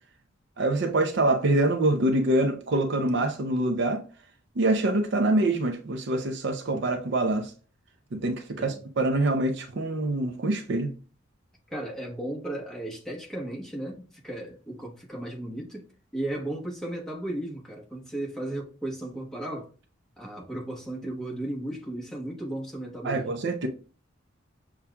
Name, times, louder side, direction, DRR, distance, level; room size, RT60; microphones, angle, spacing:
voice 1, 0.6-4.0 4.6-7.5 8.1-10.9 23.0-23.7, right 2 dB, 60° right, 0.5 m, -25 dB
voice 2, 11.7-15.8 16.1-19.7 20.2-23.4, right 1 dB, ahead, 1.0 m, -35 dB
6.8 x 2.4 x 2.2 m
head